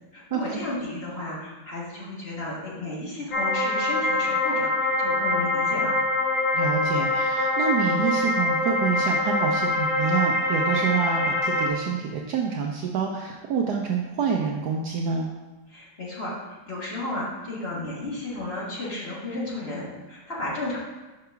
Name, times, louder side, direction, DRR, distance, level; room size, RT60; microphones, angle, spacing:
voice 1, 0.1-5.9 15.7-20.8, left 2 dB, 35° left, -6 dB, 1.5 m, -33 dB
sound 1, 3.3-11.7, left 2 dB, 50° left, 1.1 m, -24 dB
voice 2, 6.5-15.3, right 6 dB, 70° right, 1 dB, 1.0 m, -27 dB
5.8 x 3.8 x 5.6 m, 1.2 s
omnidirectional pair, 2.1 m